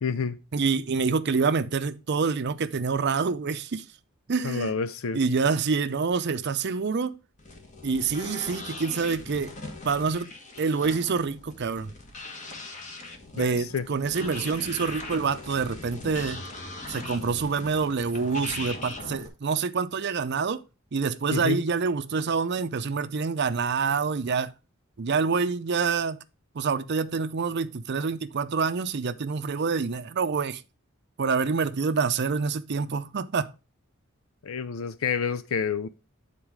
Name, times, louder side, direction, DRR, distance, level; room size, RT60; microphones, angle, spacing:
voice 1, 0.0-0.4 4.4-5.2 13.4-13.8 21.3-21.6 34.4-35.9, left 6 dB, 80° left, 0.5 m, -29 dB
voice 2, 0.5-3.8 4.3-4.7 5.1-7.2 7.8-9.5 9.8-10.3 10.6-11.9 13.3-16.4 16.9-20.6 20.9-24.5 25.0-26.2 26.6-30.6 31.2-33.5, right 5 dB, 55° right, 0.5 m, -27 dB
sound 1, 7.4-19.3, left 2 dB, 35° left, 1.4 m, -40 dB
8.9 x 4.2 x 4.8 m
head